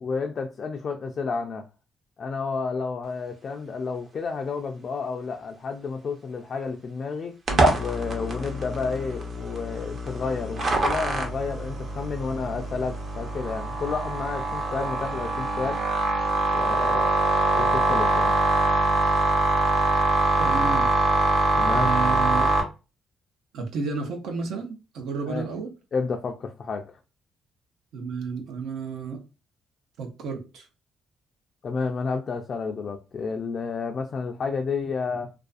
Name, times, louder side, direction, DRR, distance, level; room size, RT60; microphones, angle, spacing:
voice 1, 0.0-1.7 2.2-7.3 7.8-15.8 16.5-17.1 17.6-18.3 21.6-21.9 25.3-25.5 25.9-26.9 31.6-35.3, left 4 dB, 50° left, 0.3 m, -31 dB
sound 1, 7.5-22.6, right 2 dB, 50° right, 0.7 m, -24 dB
voice 2, 20.4-20.9 21.7-22.5 23.5-25.7 27.9-29.2 30.0-30.7, right 4 dB, 80° right, 0.6 m, -31 dB
2.4 x 2.3 x 2.4 m
cardioid pair, 90°, 0 cm